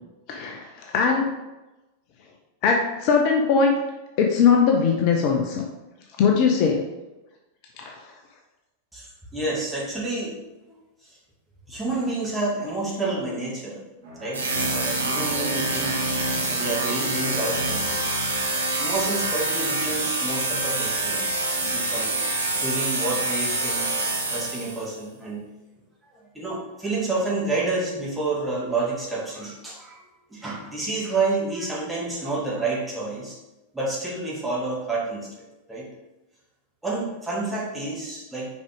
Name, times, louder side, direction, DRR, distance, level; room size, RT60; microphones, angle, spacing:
voice 1, 0.3-1.3 2.6-3.8 4.2-5.6 6.2-6.8 7.8-8.0, left 5 dB, 45° left, 2 dB, 0.7 m, -20 dB
voice 2, 8.9-10.4 10.7-11.2 11.7-13.8 14.2-16.0 16.5-18.0 18.8-24.0 24.3-25.5 26.2-33.4 33.7-35.9 36.8-38.5, right 3 dB, 5° right, -6 dB, 2.3 m, -29 dB
Bowed string instrument, 14.0-19.1, equal, 55° right, 2.3 m, -40 dB
sound 1, 14.3-24.9, right 2 dB, 75° right, 1.0 m, -26 dB
6.3 x 5.0 x 3.6 m, 1.0 s
figure-of-eight pair, 90°, 0 cm